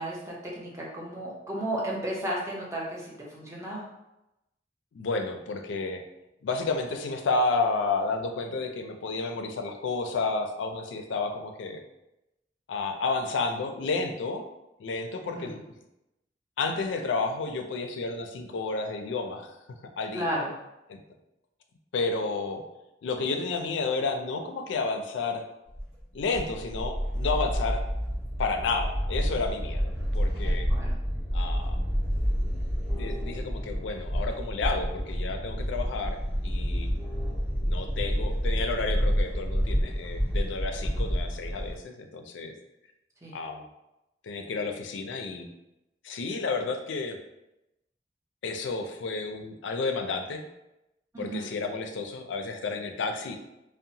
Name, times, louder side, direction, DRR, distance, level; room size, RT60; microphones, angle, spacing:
voice 1, 0.0-3.8 15.3-15.6 20.1-20.5 30.4-30.9 43.2-43.4 51.1-51.5, right 1 dB, 15° right, -4 dB, 0.6 m, -34 dB
voice 2, 4.9-6.0 6.4-11.8 12.7-14.5 14.8-15.6 16.6-19.5 20.0-20.3 20.9-21.0 21.9-22.6 23.0-25.4 26.1-27.8 28.4-30.7 31.3-31.8 32.9-36.9 37.6-42.5 43.3-43.6 44.2-45.5 46.0-47.2 48.4-50.5 51.2-53.4, left 3 dB, 75° left, 5 dB, 0.4 m, -31 dB
sound 1, 25.8-41.7, equal, 35° right, 1.5 m, -29 dB
2.7 x 2.1 x 2.7 m, 0.92 s
head